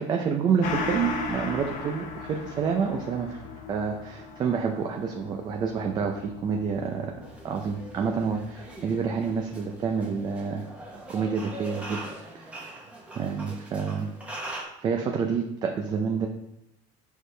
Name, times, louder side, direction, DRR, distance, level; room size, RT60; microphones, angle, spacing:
voice 1, 0.0-3.4 3.7-7.2 7.4-10.7 11.1-12.0 12.3-12.7 13.2-14.1 14.5-16.3, right 6 dB, 25° right, 3 dB, 0.5 m, -28 dB
Gong, 0.6-9.6 9.9-10.0, left 3 dB, 55° left, 0.9 m, -38 dB
sound 1, 7.2-14.6, right 1 dB, 10° right, 1.0 m, -42 dB
6.3 x 4.9 x 3.3 m, 0.84 s
cardioid pair, 165°, 16 cm